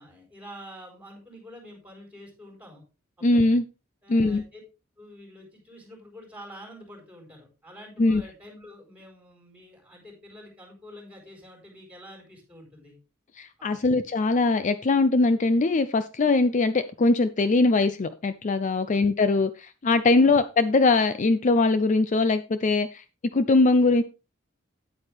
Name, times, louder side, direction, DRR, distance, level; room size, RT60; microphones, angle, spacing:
voice 1, 0.0-2.8 3.2-3.6 4.0-4.6 5.0-13.0 13.6-14.0 18.9-19.0 20.2-20.3, equal, 5° right, 4.3 m, -47 dB
voice 2, 3.2-3.6 4.1-4.4 8.0-8.2 13.4-23.0 23.3-24.0, left 3 dB, 35° left, 0.5 m, -21 dB
9.8 x 8.7 x 3.4 m
head